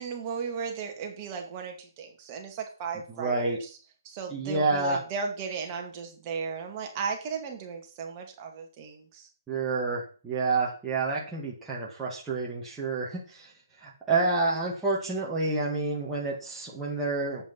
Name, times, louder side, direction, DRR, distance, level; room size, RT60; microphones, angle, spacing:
voice 1, 0.0-3.7 4.0-9.3, right 5 dB, 25° right, 3 dB, 2.3 m, -35 dB
voice 2, 3.1-3.6 4.3-5.0 9.5-13.5 13.8-17.4, right 3 dB, 10° right, -5 dB, 2.1 m, -29 dB
8.0 x 7.1 x 7.4 m, 0.39 s
hypercardioid pair, 160°, 2 cm